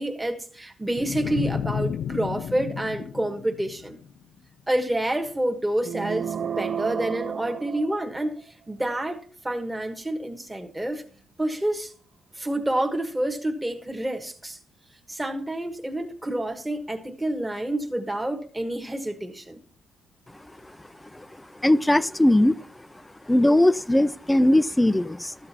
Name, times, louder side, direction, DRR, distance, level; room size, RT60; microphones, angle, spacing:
voice 1, 0.0-4.0 4.7-11.0 11.4-11.9 12.3-14.6 15.1-19.6, right 1 dB, 10° right, 1.4 m, -28 dB
sound 1, 1.0-4.2, left 7 dB, 65° left, 0.4 m, -32 dB
sound 2, 5.8-8.5, right 8 dB, 45° right, 0.4 m, -32 dB
voice 2, 21.6-22.7 23.3-25.3, left 1 dB, 10° left, 0.5 m, -20 dB
12.5 x 7.8 x 4.2 m
cardioid pair, 90°, 0 cm